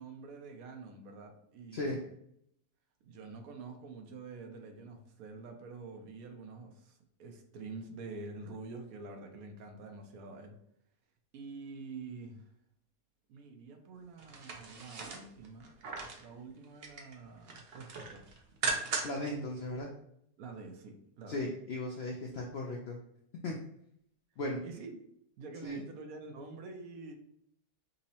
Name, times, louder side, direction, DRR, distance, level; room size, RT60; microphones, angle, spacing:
voice 1, 0.0-2.0 3.0-10.6 11.3-12.5 13.3-15.7 16.2-18.3 20.4-21.4 24.6-25.0 25.4-27.1, right 3 dB, 75° right, 4 dB, 1.0 m, -47 dB
sound 1, 14.2-16.3 16.6-17.2 17.5-19.3 19.7-19.8, right 4 dB, 60° right, 0.6 m, -38 dB
voice 2, 19.0-19.9 21.3-23.0 23.4-23.5 24.4-24.6 25.6-25.8, left 1 dB, 75° left, 0 dB, 0.6 m, -36 dB
5.3 x 2.0 x 2.7 m, 0.73 s
omnidirectional pair, 1.6 m